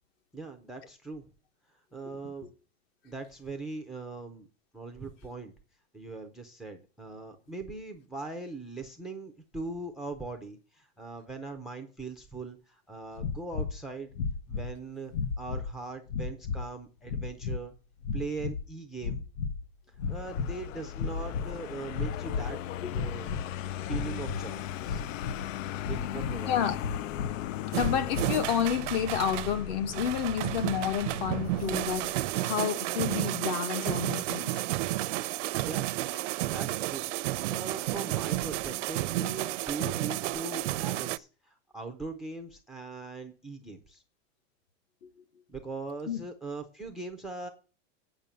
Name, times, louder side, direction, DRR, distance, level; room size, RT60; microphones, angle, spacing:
voice 1, 0.3-1.3 1.7-2.5 3.0-4.5 4.7-5.5 5.9-14.1 14.5-17.7 18.1-19.2 19.9-22.6 22.9-23.3 23.8-25.0 25.9-26.6 35.6-35.9 36.5-37.1 37.3-44.0 45.5-47.5, right 3 dB, ahead, 0.4 m, -40 dB
sound 1, 13.2-13.8 14.1-14.7 15.1-15.7 16.1-16.7 17.0-17.6 18.0-18.7 19.0-19.6 19.9-20.6 20.9-21.5 21.9-22.5 22.9-23.5 23.9-24.4 24.8-25.5 25.8-26.4 26.8-27.3 27.8-28.3, left 5 dB, 65° left, 1.1 m, -33 dB
Vehicle, 20.0-32.3, left 12 dB, 90° left, 0.6 m, -38 dB
voice 2, 26.4-26.8 27.7-34.6 45.0-45.1 46.1-46.2, left 8 dB, 50° left, 1.5 m, -30 dB
sound 2, 27.7-29.6 29.9-41.2, right 17 dB, 70° right, 0.6 m, -32 dB
8.8 x 5.8 x 6.9 m
supercardioid pair, 155°, 38 cm